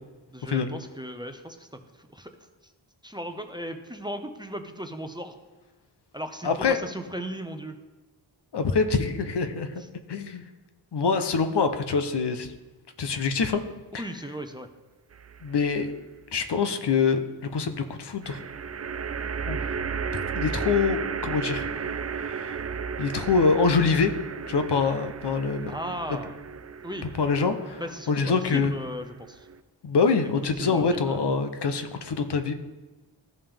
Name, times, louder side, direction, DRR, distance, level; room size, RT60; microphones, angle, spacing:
voice 1, 0.3-2.3 3.0-5.4 6.1-7.8 13.9-14.7 25.7-26.4 26.8-27.3 27.8-29.5 30.2-30.3 30.6-31.2, equal, 10° right, 6 dB, 0.7 m, -37 dB
voice 2, 6.4-6.8 8.5-9.7 10.1-10.4 10.9-12.5 13.0-13.6 13.9-14.1 15.4-15.9 16.3-18.4 19.5-19.6 20.3-22.6 23.0-24.1 24.5-25.7 27.2-27.8 28.1-28.7 29.8-32.5, left 5 dB, 60° left, 8 dB, 0.9 m, -25 dB
sound 1, 15.1-15.7 18.2-29.6, right 6 dB, 35° right, 0.4 m, -34 dB
14.5 x 5.4 x 3.5 m, 1.2 s
cardioid pair, 70°, 46 cm